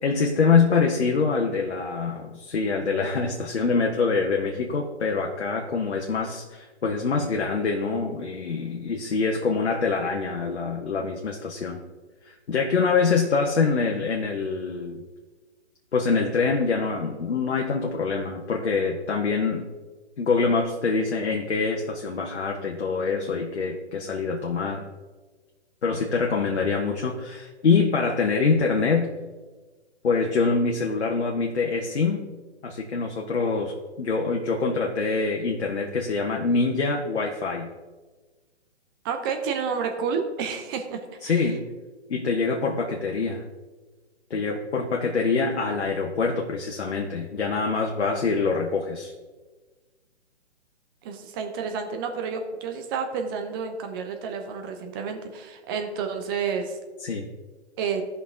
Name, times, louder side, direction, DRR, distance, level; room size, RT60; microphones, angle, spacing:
voice 1, 0.0-11.8 12.2-15.0 15.9-19.7 20.2-24.8 25.8-29.1 30.0-32.2 32.6-37.7 41.2-41.6 42.1-43.4 44.3-49.1 57.0-57.3, left 4 dB, 70° left, 1 dB, 1.2 m, -25 dB
voice 2, 39.0-41.5 51.0-56.8 57.8-58.0, right 6 dB, 20° right, 5 dB, 0.7 m, -30 dB
15.0 x 5.7 x 3.7 m, 1.3 s
figure-of-eight pair, 135°, 34 cm